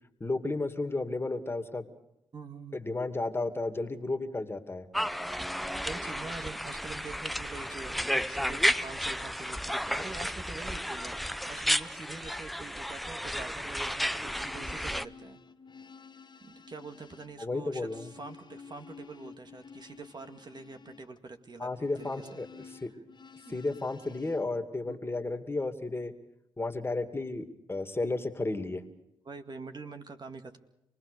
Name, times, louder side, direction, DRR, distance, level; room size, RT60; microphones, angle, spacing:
voice 1, 0.2-1.9 2.7-4.9 17.4-18.1 21.6-22.5 22.8-22.9 23.5-26.1 26.6-28.8, left 2 dB, 25° left, 7 dB, 2.4 m, -33 dB
voice 2, 2.3-2.8 5.9-15.4 16.4-22.4 22.7-22.8 23.4-23.6 24.8-25.1 29.3-30.6, right 3 dB, 45° right, 6 dB, 2.1 m, -45 dB
sound 1, 4.9-15.1, equal, ahead, 0.8 m, -32 dB
sound 2, 14.2-24.4, left 5 dB, 45° left, 1.5 m, -52 dB
27.5 x 19.0 x 6.8 m, 0.82 s
supercardioid pair, 50°, 10 cm